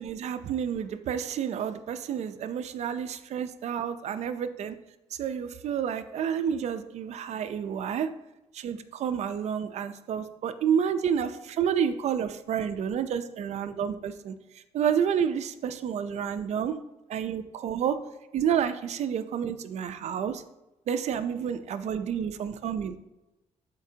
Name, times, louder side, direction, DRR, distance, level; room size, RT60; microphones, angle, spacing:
voice 1, 0.0-4.8 5.2-8.1 8.5-16.8 17.1-18.0 18.3-20.4 20.9-23.0, right 8 dB, 65° right, 10 dB, 0.6 m, -30 dB
12.0 x 4.5 x 2.8 m, 0.96 s
cardioid pair, 115°, 12 cm